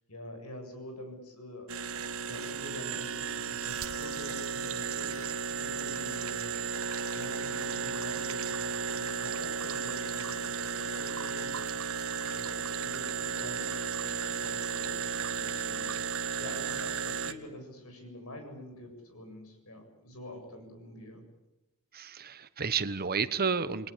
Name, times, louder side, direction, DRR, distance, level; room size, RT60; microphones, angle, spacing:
voice 1, 0.1-6.5 7.1-11.5 12.1-15.9 16.4-21.2, left 1 dB, 75° left, 4 dB, 7.9 m, -46 dB
sound 1, 1.7-17.3, right 6 dB, 70° right, 1.5 m, -34 dB
voice 2, 21.9-23.9, right 5 dB, 45° right, 13 dB, 1.2 m, -31 dB
29.0 x 20.5 x 8.6 m, 0.94 s
head